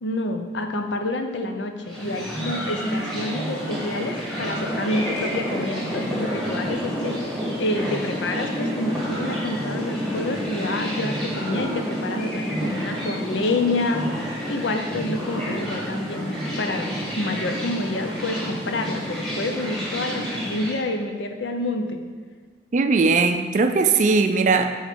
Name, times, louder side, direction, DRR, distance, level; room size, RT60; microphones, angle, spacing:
voice 1, 0.0-16.9 17.1-22.0, left 2 dB, 80° left, 5 dB, 0.6 m, -28 dB
sound 1, 1.8-20.8, equal, ahead, 1.9 m, -29 dB
voice 2, 22.7-24.7, right 4 dB, 45° right, 8 dB, 0.4 m, -19 dB
6.4 x 4.0 x 5.2 m, 1.5 s
head